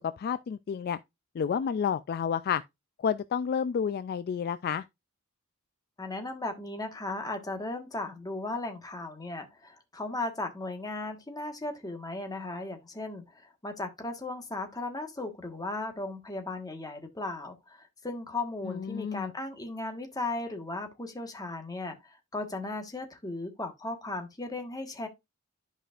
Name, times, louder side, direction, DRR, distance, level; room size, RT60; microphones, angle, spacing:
voice 1, 0.2-1.0 1.4-2.6 3.0-4.8 18.6-19.3, left 7 dB, 50° left, 0.3 m, -30 dB
voice 2, 6.0-13.2 13.6-22.0 22.3-25.1, left 2 dB, 20° left, 1.4 m, -36 dB
11.0 x 5.0 x 2.4 m
head